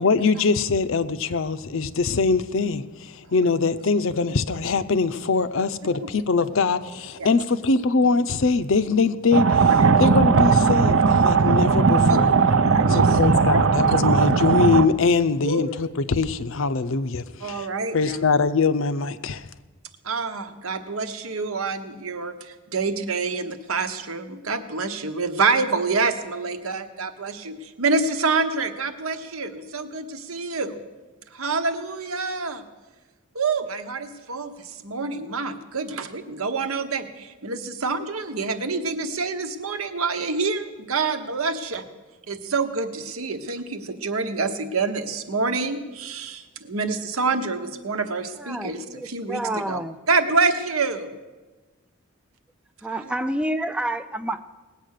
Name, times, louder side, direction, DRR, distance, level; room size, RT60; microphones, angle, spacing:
voice 1, 0.0-9.7 10.0-12.3 12.9-17.7 17.9-19.5, left 4 dB, 65° left, 0.6 m, -22 dB
sound 1, 9.3-14.9, right 5 dB, 60° right, 0.6 m, -18 dB
voice 2, 12.6-13.2 13.5-13.6 15.4-15.6 17.4-18.2 20.0-30.8 31.3-32.6 33.3-41.8 42.3-49.8 50.1-51.1 53.0-53.1, right 4 dB, 80° right, 1.1 m, -27 dB
voice 3, 48.4-50.0 52.8-54.4, right 1 dB, 5° right, 0.4 m, -29 dB
19.0 x 8.3 x 6.6 m
head